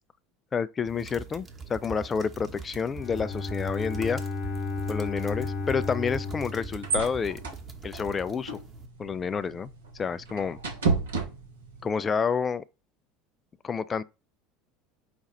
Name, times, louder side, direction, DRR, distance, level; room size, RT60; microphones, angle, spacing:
voice 1, 0.5-4.2 4.9-7.4 7.8-8.6 9.0-9.7 10.0-10.6 11.8-12.6 13.6-14.0, left 6 dB, 25° left, 0.4 m, -29 dB
sound 1, 0.9-8.9, right 4 dB, 25° right, 1.1 m, -43 dB
Bowed string instrument, 2.9-7.7, left 3 dB, 50° left, 1.1 m, -34 dB
sound 2, 6.2-11.9, right 4 dB, 70° right, 1.1 m, -33 dB
5.2 x 2.4 x 4.0 m
figure-of-eight pair, 70°, 0 cm